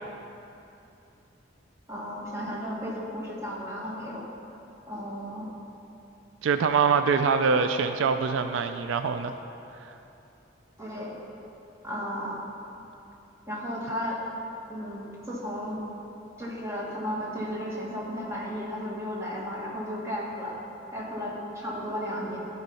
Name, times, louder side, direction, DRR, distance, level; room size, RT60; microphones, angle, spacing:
voice 1, 1.9-4.3 4.9-5.5 10.8-11.1 11.8-12.4 13.5-14.2 14.7-15.8 16.4-20.5 20.9-22.4, equal, 15° right, -5 dB, 1.5 m, -34 dB
voice 2, 6.4-9.3 9.8-9.9, right 5 dB, 85° right, 9 dB, 0.4 m, -24 dB
12.5 x 4.5 x 5.5 m, 2.9 s
head